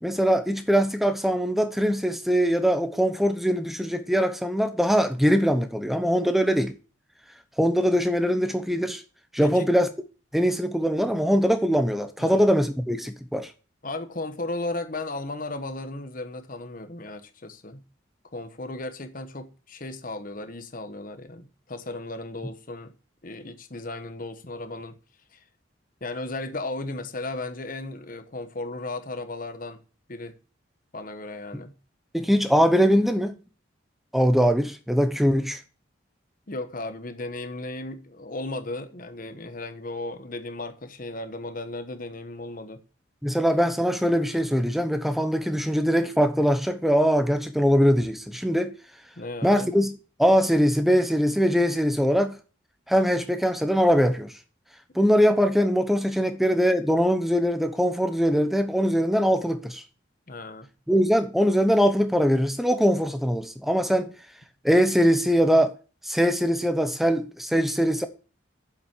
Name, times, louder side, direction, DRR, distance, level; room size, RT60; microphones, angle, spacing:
voice 1, 0.0-6.8 7.6-9.0 9.3-9.9 10.3-13.5 32.1-33.4 34.1-35.6 43.2-48.8 49.4-52.4 52.9-54.3 54.9-59.8 60.9-64.1 64.6-65.7 66.0-68.1, equal, ahead, 0.9 m, -22 dB
voice 2, 13.8-17.8 18.3-22.9 23.2-25.0 25.3-25.4 26.0-29.8 30.1-30.3 30.9-31.7 36.5-42.8 49.2-49.7 60.3-60.7, left 2 dB, 45° left, 1.2 m, -35 dB
7.6 x 7.3 x 7.3 m
head